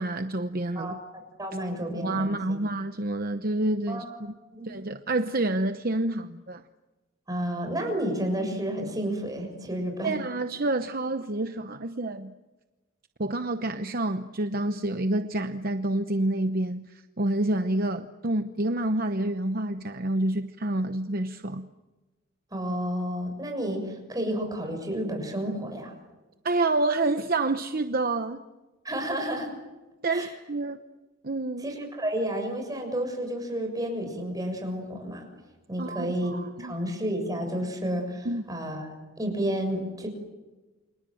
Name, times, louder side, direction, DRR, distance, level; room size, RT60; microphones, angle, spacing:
voice 1, 0.0-1.0 2.0-4.3 4.6-6.6 10.0-12.3 13.2-21.7 26.4-28.4 30.0-30.8 31.2-31.7 35.8-36.8 38.2-38.4, right 2 dB, 45° right, 0.9 m, -28 dB
voice 2, 0.7-2.4 3.9-4.2 4.5-4.7 7.3-10.1 22.5-25.9 28.8-29.5 30.1-30.3 31.6-35.3 35.7-40.1, equal, 15° right, 6.8 m, -31 dB
29.5 x 25.5 x 7.8 m
head